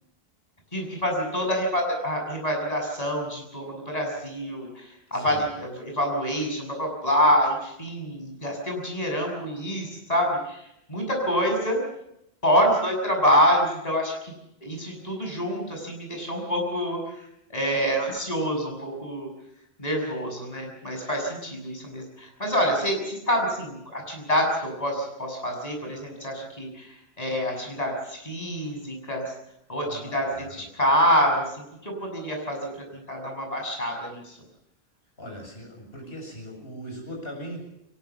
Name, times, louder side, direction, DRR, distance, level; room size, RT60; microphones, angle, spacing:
voice 1, 0.7-10.6 10.9-11.8 12.4-14.3 14.6-17.2 17.5-19.3 19.8-29.3 29.7-34.4, equal, 40° left, 1 dB, 6.9 m, -26 dB
voice 2, 29.8-30.6 35.2-37.6, equal, 70° left, 1 dB, 7.7 m, -39 dB
22.5 x 20.0 x 7.2 m, 0.81 s
omnidirectional pair, 1.0 m